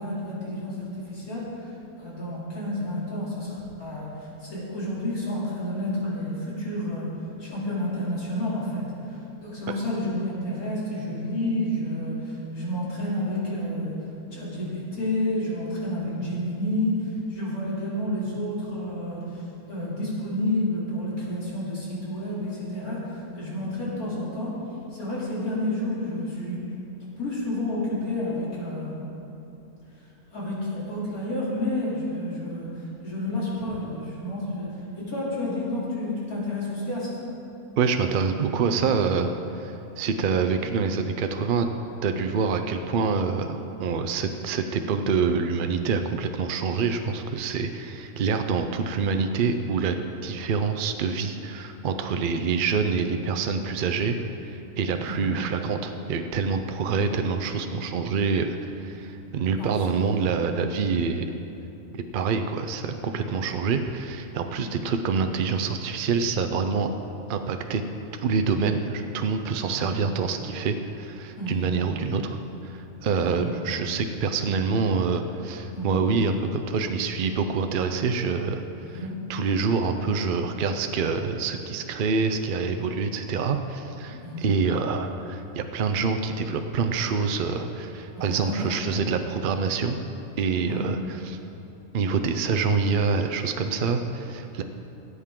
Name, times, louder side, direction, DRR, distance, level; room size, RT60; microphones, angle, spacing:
voice 1, 0.0-7.1 7.4-13.9 14.3-19.4 19.7-24.6 24.9-26.7 27.2-28.9 30.3-37.2 55.1-55.4 59.6-60.0 69.8-70.0 71.4-71.8 73.1-73.5 75.7-76.1 78.8-79.3 84.1-84.5 88.1-89.0 90.7-90.9, left 1 dB, 85° left, -7 dB, 3.4 m, -30 dB
voice 2, 37.8-39.3 39.5-41.7 42.0-50.0 50.2-54.2 54.4-61.3 61.9-66.9 67.3-67.8 68.2-78.6 78.9-79.0 79.3-90.0 90.4-91.4 91.9-94.6, right 5 dB, 65° right, 6 dB, 0.5 m, -26 dB
17.5 x 8.2 x 3.7 m, 2.9 s
omnidirectional pair, 1.5 m